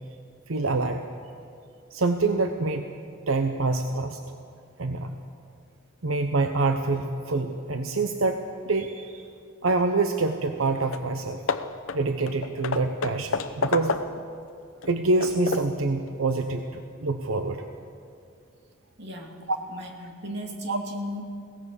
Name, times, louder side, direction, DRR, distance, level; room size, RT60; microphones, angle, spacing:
voice 1, 0.5-1.0 1.9-2.9 3.3-4.2 4.8-5.2 6.0-9.2 9.6-11.4 11.9-13.9 14.9-17.6 19.5-19.6 20.7-20.8, right 3 dB, 80° right, 6 dB, 0.9 m, -26 dB
Hammer / Wood, 10.6-10.7 10.9-11.1 11.5-14.3 14.8-15.8, left 4 dB, 85° left, 0.8 m, -31 dB
voice 2, 19.0-19.4 19.7-21.2, left 1 dB, 55° right, 1 dB, 2.7 m, -36 dB
22.0 x 18.0 x 6.9 m, 2.4 s
head